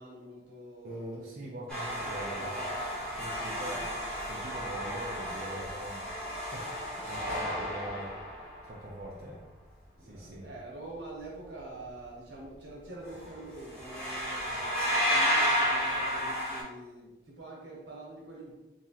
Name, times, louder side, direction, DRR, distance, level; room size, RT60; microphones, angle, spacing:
voice 1, 0.0-1.0 2.0-2.8 3.4-3.9 6.9-7.1 7.4-7.6 9.9-18.5, right 2 dB, 75° right, -3 dB, 1.3 m, -46 dB
voice 2, 0.8-2.5 3.1-3.9 4.2-6.1 6.5-8.2 8.6-9.4 10.0-10.5 14.6-14.7, right 1 dB, 50° right, -6 dB, 0.5 m, -42 dB
sound 1, 1.7-8.8 13.1-13.3 13.6-16.6, equal, 5° left, 1.0 m, -32 dB
3.6 x 3.0 x 2.9 m, 1.1 s
head